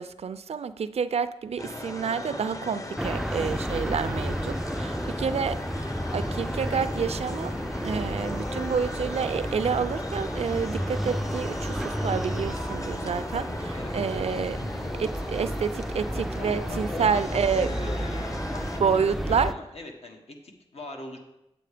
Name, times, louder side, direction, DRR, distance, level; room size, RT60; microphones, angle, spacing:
voice 1, 0.0-7.5 7.8-14.6 15.0-17.7 18.8-19.5, right 6 dB, 80° right, 13 dB, 0.4 m, -29 dB
sound 1, 1.6-18.8, left 2 dB, 30° left, 0.7 m, -38 dB
sound 2, 3.0-19.5, equal, ahead, 0.3 m, -32 dB
voice 2, 4.7-5.2 13.7-13.9 16.1-21.2, left 2 dB, 75° left, 2 dB, 1.5 m, -41 dB
8.4 x 7.7 x 5.0 m, 0.88 s
wide cardioid pair, 105°, 11 cm